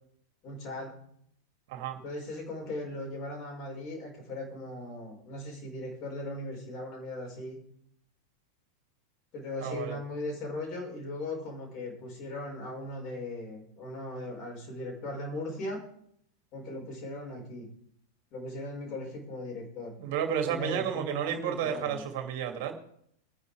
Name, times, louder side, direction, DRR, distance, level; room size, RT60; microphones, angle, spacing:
voice 1, 0.4-0.9 1.9-7.6 9.3-15.8 16.5-17.7 18.3-19.9 20.5-22.1, left 1 dB, 40° left, -1 dB, 5.5 m, -38 dB
voice 2, 9.6-10.0 20.0-22.7, right 8 dB, 50° right, 4 dB, 2.7 m, -31 dB
22.0 x 9.5 x 3.5 m, 0.68 s
figure-of-eight pair, 90°, 0 cm